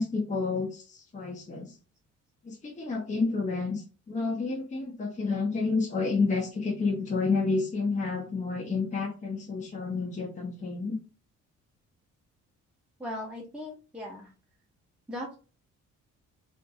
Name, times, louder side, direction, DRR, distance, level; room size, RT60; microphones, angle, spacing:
voice 1, 0.0-1.7 2.4-11.0, left 4 dB, 25° left, 0 dB, 0.7 m, -30 dB
voice 2, 13.0-14.3 15.1-15.4, left 1 dB, 5° right, -3 dB, 0.8 m, -38 dB
2.6 x 2.5 x 2.3 m, 0.35 s
cardioid pair, 90°, 30 cm